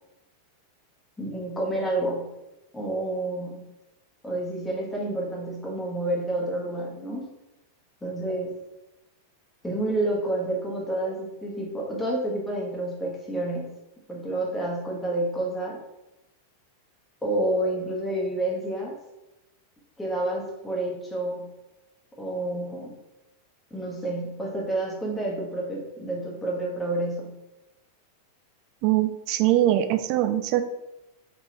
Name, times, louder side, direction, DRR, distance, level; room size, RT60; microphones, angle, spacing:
voice 1, 1.2-2.3 2.7-3.6 4.2-7.3 8.0-8.6 9.6-13.7 14.1-15.8 17.2-18.9 20.0-21.5 22.2-22.9 23.7-27.4, right 1 dB, 10° left, -3 dB, 1.2 m, -29 dB
voice 2, 28.8-30.6, right 13 dB, 45° right, 9 dB, 0.4 m, -22 dB
4.1 x 3.6 x 3.0 m, 0.95 s
figure-of-eight pair, 90°, 0 cm